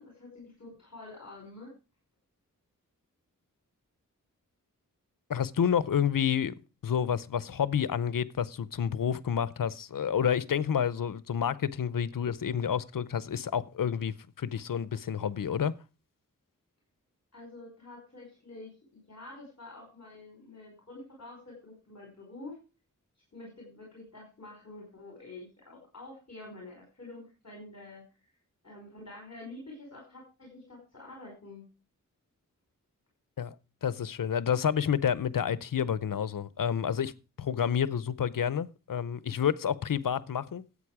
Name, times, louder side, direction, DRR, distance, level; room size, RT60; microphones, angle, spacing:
voice 1, 0.0-1.7 17.3-22.6 23.3-28.3 28.6-31.7, left 2 dB, 55° left, 5.2 m, -48 dB
voice 2, 5.3-6.5 6.8-15.7 33.4-33.6 33.8-37.1 37.4-40.6, left 8 dB, 80° left, 0.7 m, -29 dB
13.5 x 8.7 x 4.9 m
wide cardioid pair, 70°, 32 cm